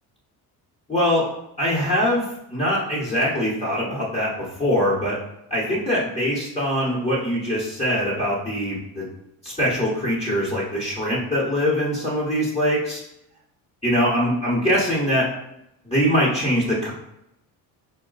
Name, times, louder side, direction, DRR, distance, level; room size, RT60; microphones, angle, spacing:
voice 1, 0.9-1.3 1.6-5.2 5.5-9.1 9.4-13.0 13.8-15.3 15.8-16.9, equal, 15° left, -8 dB, 1.3 m, -23 dB
4.2 x 2.3 x 4.0 m, 0.83 s
supercardioid pair, 85°, 43 cm